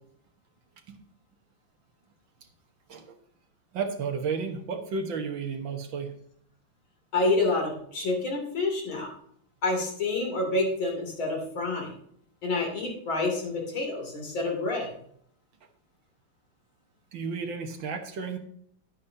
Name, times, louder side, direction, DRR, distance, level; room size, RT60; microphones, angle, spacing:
voice 1, 3.7-6.1 17.1-18.4, right 5 dB, 70° right, 5 dB, 2.0 m, -32 dB
voice 2, 7.1-9.1 9.6-11.9 12.4-14.9, left 2 dB, 80° left, 0 dB, 3.6 m, -28 dB
11.0 x 9.5 x 2.7 m, 0.65 s
omnidirectional pair, 2.2 m